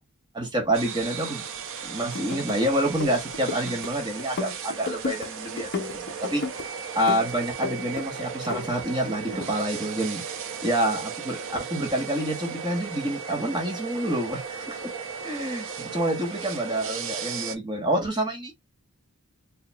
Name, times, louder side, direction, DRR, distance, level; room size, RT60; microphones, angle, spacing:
voice 1, 0.3-1.4 1.8-6.4 6.9-10.2 10.6-14.9 15.2-18.5, right 1 dB, 20° right, 1.1 m, -28 dB
sound 1, 0.7-17.5, right 6 dB, 60° right, 0.7 m, -36 dB
sound 2, 2.0-2.6 2.9-3.9 4.2-5.3 5.6-6.7 7.1-8.1 8.3-9.5, left 4 dB, 50° left, 0.6 m, -34 dB
4.2 x 2.9 x 2.2 m
head